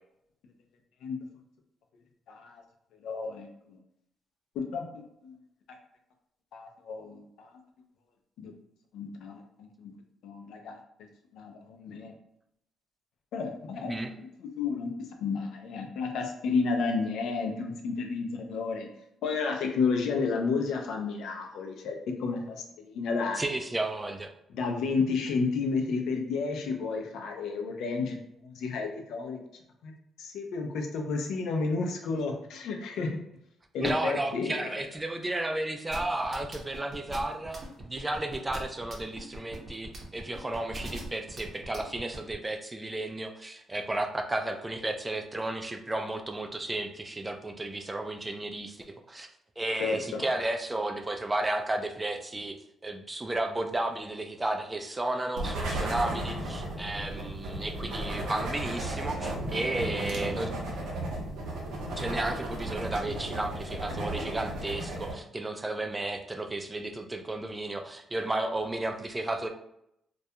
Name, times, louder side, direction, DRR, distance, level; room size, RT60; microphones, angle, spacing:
voice 1, 2.3-2.6 3.0-3.8 4.5-5.4 6.5-7.5 8.4-8.5 8.9-9.9 10.2-10.8 11.3-12.1 13.3-14.9 15.2-18.9 19.2-23.4 24.5-29.4 29.8-29.9 30.2-33.1 33.7-34.7 49.8-50.2, left 4 dB, 80° left, 3 dB, 0.4 m, -31 dB
voice 2, 23.4-24.3 33.8-49.3 49.6-52.6 52.8-60.5 61.9-69.5, right 2 dB, 15° right, 5 dB, 0.3 m, -33 dB
sound 1, 35.9-42.3, right 1 dB, 45° right, 0.7 m, -41 dB
sound 2, 55.4-65.1, right 1 dB, 80° right, 0.7 m, -34 dB
2.3 x 2.2 x 2.7 m, 0.77 s
cardioid pair, 90°, 0 cm